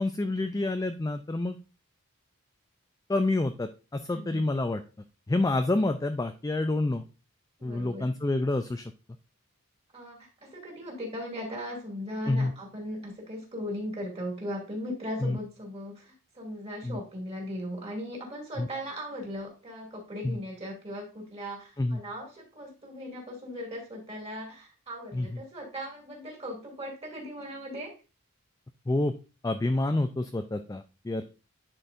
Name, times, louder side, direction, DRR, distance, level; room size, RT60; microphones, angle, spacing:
voice 1, 0.0-1.6 3.1-4.8 5.3-7.0 7.6-8.9 12.3-12.5 15.2-15.4 16.8-17.0 18.6-18.7 20.2-20.4 21.8-22.0 25.1-25.4 28.9-29.1 29.4-31.2, left 2 dB, 15° left, 8 dB, 0.3 m, -28 dB
voice 2, 4.1-4.5 7.6-8.1 9.9-28.0, equal, 30° right, 0 dB, 2.4 m, -38 dB
10.0 x 4.5 x 2.5 m, 0.32 s
head